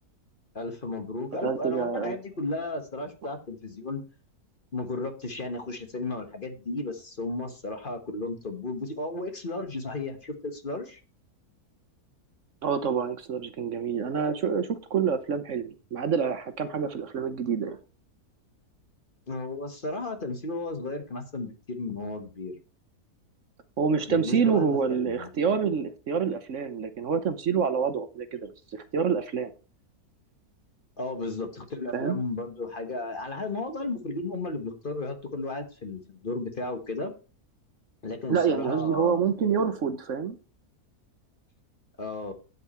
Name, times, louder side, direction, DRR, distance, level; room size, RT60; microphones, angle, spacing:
voice 1, 0.5-4.0 4.7-11.0 19.3-22.5 24.1-25.3 31.0-37.1 38.0-39.2 42.0-42.3, left 2 dB, 35° left, 6 dB, 1.4 m, -34 dB
voice 2, 1.4-2.2 12.6-17.8 23.8-29.5 31.9-32.2 38.3-40.4, right 6 dB, 60° right, 10 dB, 1.1 m, -27 dB
9.4 x 8.1 x 4.3 m, 0.33 s
omnidirectional pair, 1.6 m